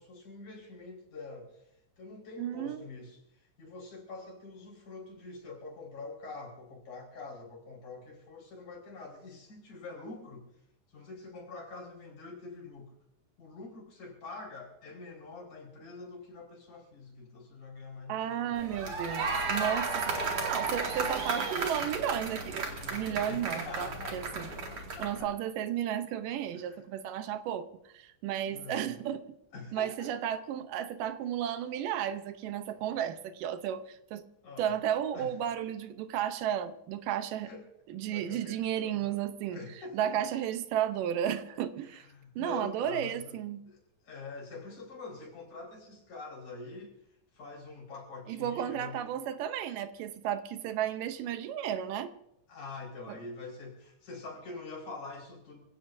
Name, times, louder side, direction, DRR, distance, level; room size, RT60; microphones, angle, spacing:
voice 1, 0.0-1.7 2.0-10.5 10.9-12.9 13.4-18.6 23.2-25.3 26.5-26.9 28.4-29.0 29.5-30.1 32.8-32.9 34.4-34.7 35.1-35.3 35.9-36.0 37.4-37.6 37.9-39.2 39.5-40.1 41.9-43.4 43.7-46.9 47.3-49.1 52.5-55.6, left 3 dB, 65° left, -2 dB, 6.2 m, -45 dB
voice 2, 2.4-2.9 18.1-20.0 20.4-24.5 25.0-27.7 27.9-29.2 29.7-34.2 34.6-37.5 37.9-39.6 39.9-42.1 42.4-43.6 48.3-52.1 53.1-53.2, right 10 dB, 80° right, 10 dB, 2.5 m, -33 dB
sound 1, 18.6-25.2, right 3 dB, 50° right, 3.2 m, -34 dB
26.5 x 16.5 x 2.7 m, 0.82 s
omnidirectional pair, 3.8 m